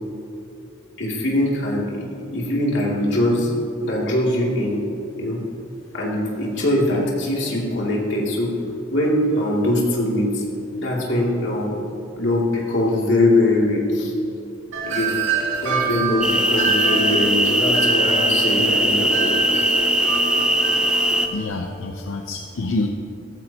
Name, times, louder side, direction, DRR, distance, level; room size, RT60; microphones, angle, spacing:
voice 1, 1.0-4.8 5.2-5.4 5.9-8.5 8.9-10.5 10.8-11.8 12.2-14.1 14.9-15.2 15.6-19.4, left 1 dB, 60° left, -4 dB, 2.7 m, -22 dB
Wind chime, 14.7-21.4, right 4 dB, 75° right, 2.3 m, -27 dB
sound 1, 16.2-21.3, right 1 dB, 5° right, 0.4 m, -20 dB
voice 2, 21.3-22.9, left 2 dB, 80° left, 3 dB, 0.7 m, -27 dB
15.0 x 14.0 x 3.0 m, 2.6 s
head